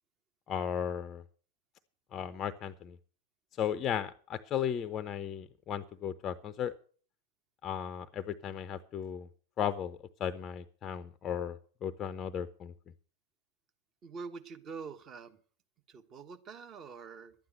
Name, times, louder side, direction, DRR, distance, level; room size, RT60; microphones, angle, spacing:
voice 1, 0.5-1.2 2.1-3.0 3.6-6.7 7.6-9.3 9.6-12.7, left 9 dB, 30° left, 14 dB, 0.6 m, -35 dB
voice 2, 14.0-15.4 15.9-17.3, right 5 dB, 30° right, 7 dB, 1.4 m, -45 dB
12.0 x 9.4 x 6.6 m, 0.43 s
figure-of-eight pair, 90°, 0 cm